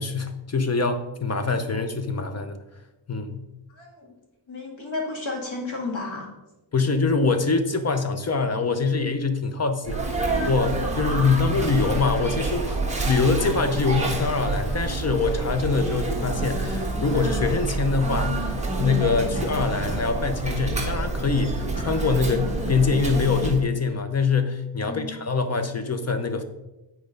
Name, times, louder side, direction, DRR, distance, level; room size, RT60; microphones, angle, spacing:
voice 1, 0.0-2.6 3.1-3.4 6.7-26.4, left 4 dB, 35° left, 8 dB, 0.7 m, -24 dB
voice 2, 3.7-4.1 4.5-6.3 10.9-11.5 24.8-25.1, left 3 dB, 75° left, -1 dB, 2.1 m, -33 dB
Sneeze, 9.8-23.6, right 2 dB, 15° right, 1.3 m, -27 dB
8.5 x 4.6 x 5.1 m, 0.98 s
wide cardioid pair, 165°, 47 cm